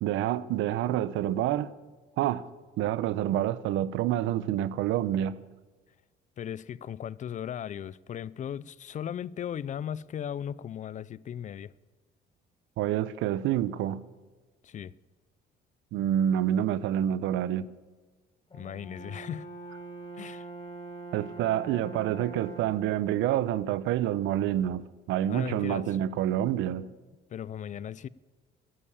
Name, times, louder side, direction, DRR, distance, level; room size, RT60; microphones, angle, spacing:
voice 1, 0.0-1.7 2.2-2.5 2.8-5.4 12.8-14.0 15.9-17.7 21.1-26.9, right 11 dB, 85° right, 0.7 m, -28 dB
voice 2, 6.4-11.7 14.6-14.9 18.5-19.5 20.1-20.5 25.3-26.0 27.3-28.1, left 9 dB, 40° left, 0.4 m, -37 dB
Brass instrument, 18.5-22.9, right 3 dB, 25° left, 4.7 m, -43 dB
11.0 x 11.0 x 8.6 m
cardioid pair, 110°, 20 cm